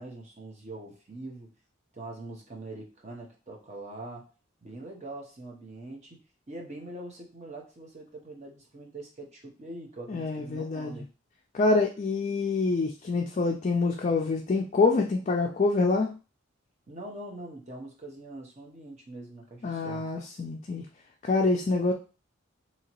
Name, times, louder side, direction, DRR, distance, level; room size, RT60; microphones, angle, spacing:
voice 1, 0.0-1.5 1.9-4.3 4.6-6.2 6.5-11.1 16.9-20.1, right 2 dB, 35° right, 0 dB, 0.8 m, -43 dB
voice 2, 10.1-11.0 11.5-16.1 19.6-20.8 21.2-21.9, left 3 dB, 35° left, 1 dB, 0.3 m, -26 dB
2.8 x 2.8 x 2.9 m, 0.33 s
head